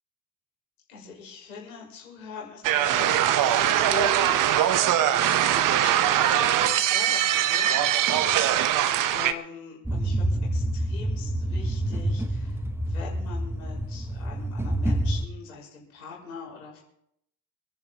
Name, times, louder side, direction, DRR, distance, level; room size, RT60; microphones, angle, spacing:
voice 1, 0.9-12.6 12.8-16.8, left 5 dB, 75° left, -3 dB, 5.4 m, -42 dB
sound 1, 2.6-9.3, right 11 dB, 45° right, 1.0 m, -22 dB
sound 2, 9.9-15.3, right 1 dB, 5° right, 1.1 m, -27 dB
27.5 x 11.0 x 3.0 m, 0.75 s
figure-of-eight pair, 55°, 43 cm